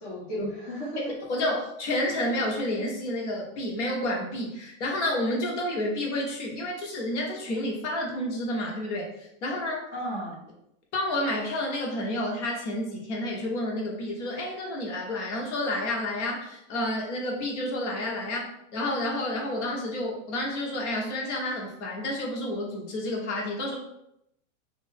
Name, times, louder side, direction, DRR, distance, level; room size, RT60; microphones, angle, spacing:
voice 1, 0.0-1.0 9.9-10.4, equal, 15° left, -9 dB, 0.4 m, -33 dB
voice 2, 1.3-9.8 10.9-23.8, left 1 dB, 60° left, -1 dB, 1.1 m, -30 dB
2.9 x 2.6 x 3.4 m, 0.79 s
supercardioid pair, 180°, 40 cm